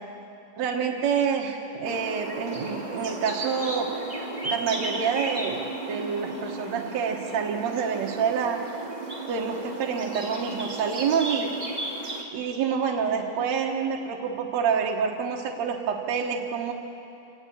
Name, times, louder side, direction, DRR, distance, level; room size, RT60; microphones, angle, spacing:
voice 1, 0.6-3.9 4.4-5.6 5.9-8.6 9.3-11.5 12.3-16.7, right 6 dB, 60° right, 1 dB, 2.0 m, -27 dB
sound 1, 1.8-12.2, right 2 dB, 15° right, 1.7 m, -34 dB
26.5 x 18.0 x 8.7 m, 2.8 s
omnidirectional pair, 4.4 m